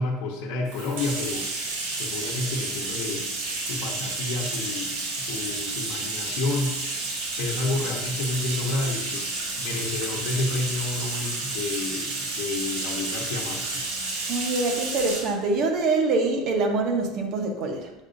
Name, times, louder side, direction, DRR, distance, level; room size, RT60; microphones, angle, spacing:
voice 1, 0.0-1.5 2.0-3.3 3.6-6.8 7.4-13.9, left 2 dB, 60° left, -2 dB, 1.0 m, -30 dB
Bathtub (filling or washing), 0.7-15.3, right 3 dB, 85° right, 2.2 m, -31 dB
voice 2, 14.3-17.9, right 3 dB, 40° right, 3 dB, 0.9 m, -25 dB
7.2 x 6.4 x 2.6 m, 1.0 s
cardioid pair, 175°, 0 cm